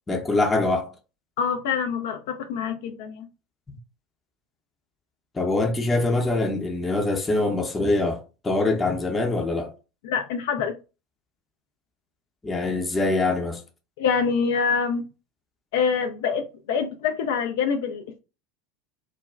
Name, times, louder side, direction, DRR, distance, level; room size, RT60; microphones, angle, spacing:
voice 1, 0.1-0.9 3.7-3.8 5.3-9.7 12.4-13.6, left 2 dB, 15° left, 0.6 m, -24 dB
voice 2, 1.4-3.3 10.0-10.7 14.0-15.0 15.7-18.2, left 6 dB, 60° left, 0.4 m, -25 dB
2.4 x 2.1 x 3.1 m
figure-of-eight pair, 75°, 0 cm